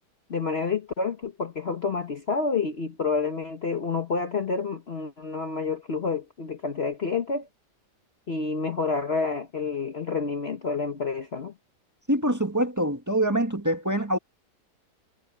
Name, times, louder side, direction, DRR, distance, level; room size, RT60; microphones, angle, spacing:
voice 1, 0.3-7.5 8.3-11.5, left 4 dB, 40° left, 1.3 m, -29 dB
voice 2, 12.1-14.2, right 1 dB, 10° right, 1.7 m, -25 dB
omnidirectional pair, 1.8 m